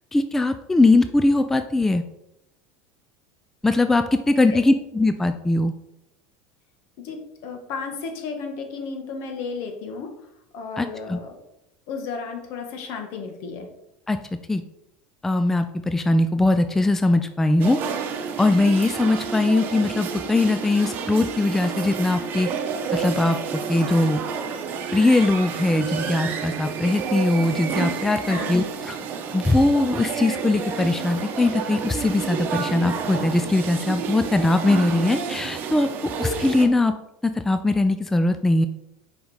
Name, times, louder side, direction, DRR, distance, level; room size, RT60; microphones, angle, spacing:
voice 1, 0.1-2.0 3.6-5.7 10.8-11.2 14.1-14.2 14.5-14.6 15.2-17.8 18.4-22.5 22.9-24.2 24.9-29.0 29.3-35.9 36.2-36.9 37.2-38.7, left 2 dB, 5° left, 9 dB, 0.3 m, -21 dB
voice 2, 7.0-10.1 10.5-11.3 11.9-13.7 28.3-28.6, left 5 dB, 60° left, 4 dB, 1.4 m, -33 dB
sound 1, 17.6-36.7, right 6 dB, 45° right, 0.9 m, -30 dB
5.1 x 5.0 x 4.9 m, 0.88 s
supercardioid pair, 125°, 5 cm